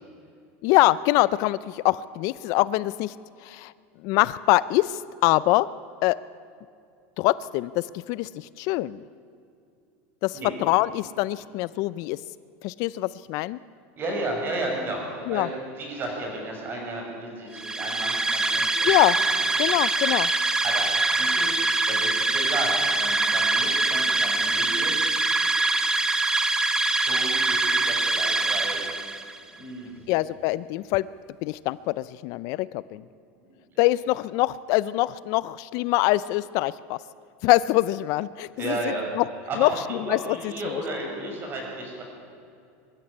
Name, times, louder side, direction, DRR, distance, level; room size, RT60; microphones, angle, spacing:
voice 1, 0.6-3.1 3.4-3.7 4.0-5.7 6.0-6.2 7.2-9.0 10.2-12.2 12.6-13.6 15.3-15.5 18.8-19.2 19.6-20.3 30.1-31.0 31.4-33.0 33.8-37.0 37.4-38.8 39.2-39.3 39.6-40.4 40.7-40.8, left 18 dB, 50° left, 18 dB, 0.4 m, -24 dB
voice 2, 14.0-19.3 19.6-19.8 20.6-24.9 26.9-28.8 29.5-30.1 33.4-33.8 38.5-39.1 39.5-42.0, right 2 dB, 30° right, 1 dB, 6.1 m, -33 dB
sound 1, 17.5-29.4, right 2 dB, 10° right, 1.0 m, -24 dB
23.5 x 12.0 x 9.9 m, 2.5 s
supercardioid pair, 150°, 7 cm